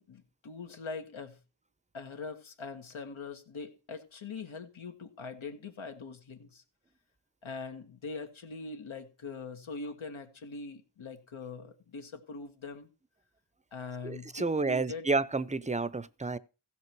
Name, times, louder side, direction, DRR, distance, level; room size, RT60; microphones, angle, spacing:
voice 1, 0.0-1.4 1.9-6.6 7.4-12.9 13.7-15.1, left 4 dB, 75° left, 2.0 m, -42 dB
voice 2, 14.0-16.4, right 3 dB, 15° right, 0.7 m, -30 dB
15.5 x 5.7 x 4.7 m
cardioid pair, 55°, 49 cm